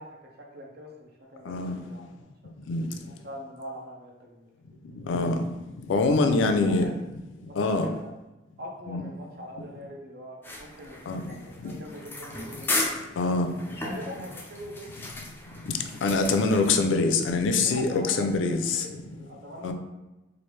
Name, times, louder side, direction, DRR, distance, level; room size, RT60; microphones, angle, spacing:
voice 1, 0.0-2.0 3.2-4.8 6.1-7.0 7.5-8.1 8.6-13.1 13.8-14.9 17.6-19.7, equal, 55° right, -1 dB, 0.7 m, -42 dB
voice 2, 1.5-1.8 2.7-2.9 5.0-5.4 5.9-6.8 7.4-7.9 8.9-9.0 11.1-11.2 11.6-11.7 13.2-13.5 15.7-18.9 19.6-19.7, left 3 dB, 80° left, 6 dB, 0.4 m, -24 dB
sound 1, 10.4-16.8, left 2 dB, 10° left, 0.3 m, -35 dB
3.2 x 2.5 x 3.0 m, 1.0 s
head